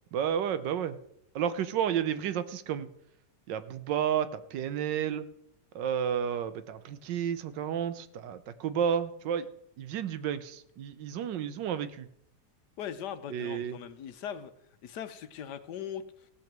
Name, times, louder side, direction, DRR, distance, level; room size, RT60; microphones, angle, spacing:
voice 1, 0.1-1.0 1.3-2.9 3.5-5.2 5.7-9.5 9.8-12.1 13.3-13.8, right 8 dB, 80° right, 13 dB, 1.5 m, -31 dB
voice 2, 12.8-14.5 14.8-16.3, left 9 dB, 70° left, 11 dB, 1.3 m, -40 dB
16.5 x 6.0 x 7.4 m, 0.76 s
omnidirectional pair, 1.9 m